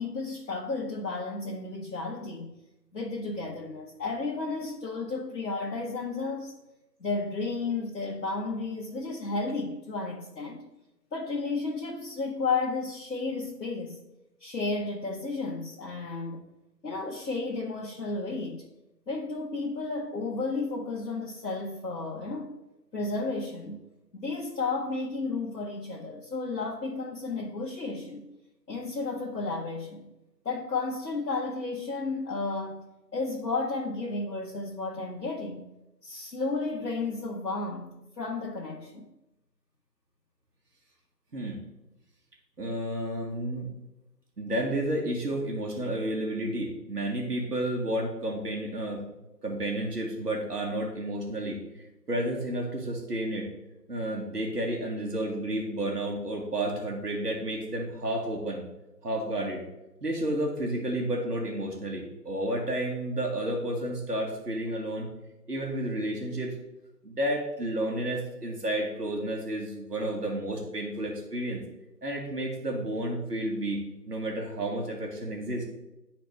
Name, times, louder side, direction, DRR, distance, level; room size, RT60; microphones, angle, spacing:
voice 1, 0.0-2.5 2.9-6.5 7.0-10.6 11.1-14.0 14.4-16.5 16.8-18.6 19.1-22.6 22.9-23.8 24.1-28.2 28.7-30.1 30.4-32.8 33.1-35.7 36.0-39.0, left 3 dB, 75° left, 1.2 m, -33 dB
voice 2, 42.6-43.7 44.4-49.0 49.4-51.6 52.1-53.5 53.9-58.6 59.0-59.6 60.0-65.1 65.5-66.5 67.0-71.6 72.0-73.8 74.1-75.6, right 1 dB, 65° right, 1.7 m, -31 dB
11.0 x 4.2 x 3.3 m
figure-of-eight pair, 165°, 50 cm